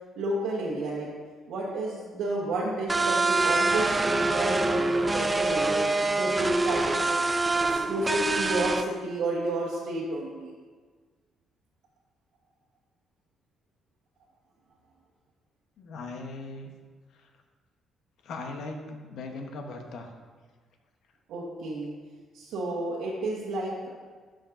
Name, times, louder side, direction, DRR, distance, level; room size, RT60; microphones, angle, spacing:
voice 1, 0.2-1.1 1.5-7.2 7.7-10.5 21.3-21.9 22.3-23.9, right 2 dB, 85° right, -5 dB, 1.1 m, -31 dB
sound 1, 2.9-8.8, right 3 dB, 20° right, 0.4 m, -25 dB
voice 2, 15.8-16.7 17.1-17.3 18.2-20.1, left 3 dB, 75° left, 4 dB, 0.9 m, -39 dB
12.5 x 5.2 x 2.6 m, 1.5 s
cardioid pair, 90°, 0 cm